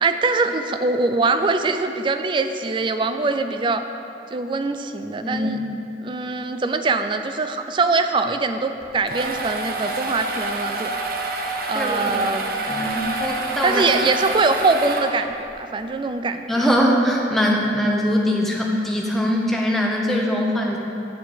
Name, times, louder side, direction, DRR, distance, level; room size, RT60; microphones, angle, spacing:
voice 1, 0.0-3.8 4.3-5.6 6.0-10.9 11.7-12.4 13.6-16.6, right 3 dB, 25° right, 8 dB, 0.3 m, -23 dB
voice 2, 5.2-5.7 11.7-12.1 12.7-13.8 16.5-20.8, equal, ahead, -2 dB, 0.8 m, -22 dB
sound 1, 8.8-15.5, right 2 dB, 55° right, 0.6 m, -27 dB
8.0 x 4.4 x 6.5 m, 2.8 s
head